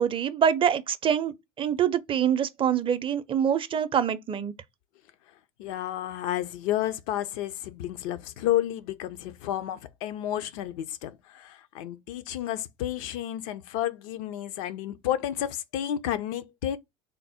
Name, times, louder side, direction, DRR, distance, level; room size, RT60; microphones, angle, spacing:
voice 1, 0.0-4.5, right 8 dB, 30° right, 0.5 m, -25 dB
voice 2, 5.6-16.8, left 12 dB, 70° left, 0.5 m, -31 dB
3.4 x 2.1 x 4.1 m
hypercardioid pair, 80°, 18 cm